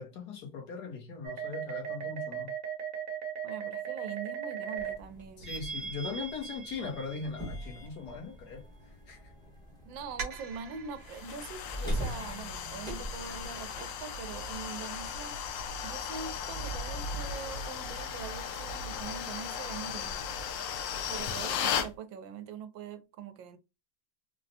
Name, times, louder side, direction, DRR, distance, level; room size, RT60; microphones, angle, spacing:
voice 1, 0.0-2.5 5.4-8.6 9.1-9.2 21.1-21.3, left 5 dB, 65° left, 1.4 m, -40 dB
sound 1, 1.2-4.9 5.4-7.6 10.2-11.2, right 7 dB, 55° right, 1.1 m, -38 dB
voice 2, 3.4-5.5 9.8-15.4 15.8-20.3 21.1-23.6, right 6 dB, 90° right, 1.3 m, -43 dB
sound 2, 4.8-14.7, equal, 5° left, 0.7 m, -42 dB
sound 3, 11.1-21.9, left 6 dB, 85° left, 1.3 m, -36 dB
3.9 x 2.1 x 2.6 m
omnidirectional pair, 2.0 m